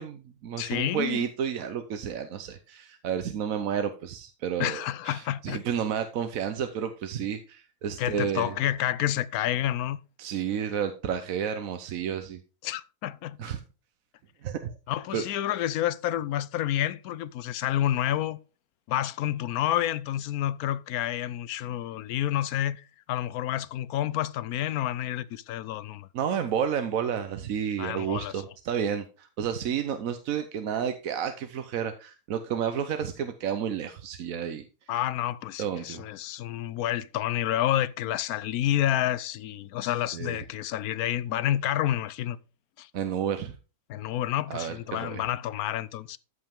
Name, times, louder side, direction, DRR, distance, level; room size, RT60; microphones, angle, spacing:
voice 1, 0.0-8.5 10.2-12.4 13.4-13.6 14.4-14.7 15.1-15.2 26.1-34.6 35.6-36.0 40.1-40.4 42.9-43.6 44.5-45.3, right 8 dB, 65° right, 1.2 m, -31 dB
voice 2, 0.6-1.2 4.6-5.6 8.0-10.0 12.6-13.4 14.9-18.4 18.9-26.1 27.8-28.4 34.9-42.4 42.8-42.9 43.9-46.2, left 12 dB, 75° left, 1.1 m, -29 dB
14.0 x 5.4 x 3.5 m
omnidirectional pair, 1.6 m